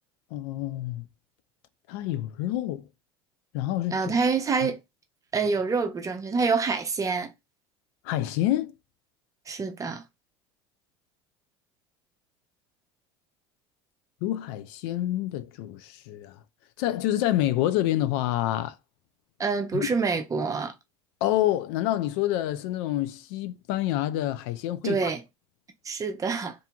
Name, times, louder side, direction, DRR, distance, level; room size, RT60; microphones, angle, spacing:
voice 1, 0.3-1.0 1.9-2.9 3.5-4.1 4.6-4.7 8.0-8.7 14.2-16.4 16.8-18.8 19.7-19.9 21.2-25.1, left 14 dB, 65° left, 0.4 m, -27 dB
voice 2, 3.9-4.8 5.3-7.3 9.5-10.0 19.4-20.7 24.8-25.2 25.8-26.5, right 4 dB, 25° right, 0.6 m, -26 dB
2.7 x 2.6 x 2.3 m
hypercardioid pair, 85°, 14 cm